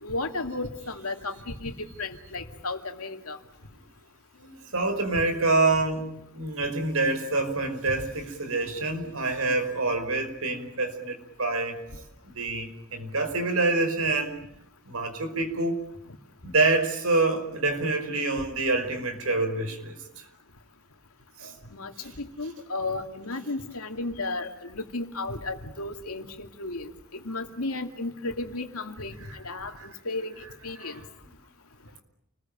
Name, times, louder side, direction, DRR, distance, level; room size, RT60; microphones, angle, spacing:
voice 1, 0.0-3.4 21.7-21.9 22.2-31.0, left 2 dB, 75° left, 5 dB, 2.5 m, -34 dB
voice 2, 4.4-11.8 12.2-14.3 14.9-15.8 16.4-20.2 21.4-21.5 29.8-29.9 30.8-30.9, right 3 dB, 75° right, 8 dB, 5.1 m, -27 dB
29.5 x 21.0 x 9.0 m, 0.77 s
head